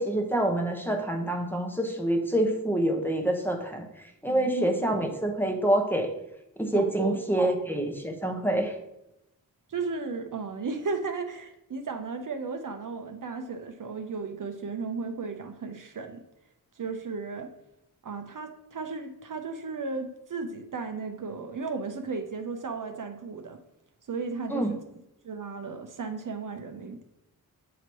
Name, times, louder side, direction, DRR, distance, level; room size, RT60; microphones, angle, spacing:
voice 1, 0.0-6.1 6.6-8.7 24.5-24.7, right 1 dB, 5° left, 1 dB, 0.8 m, -27 dB
voice 2, 4.3-4.7 6.7-7.5 8.5-8.6 9.7-16.2 16.8-17.5 18.0-23.6 24.1-24.8 25.2-27.0, right 4 dB, 60° right, 6 dB, 0.6 m, -35 dB
8.2 x 3.0 x 4.5 m, 0.86 s
wide cardioid pair, 90°, 37 cm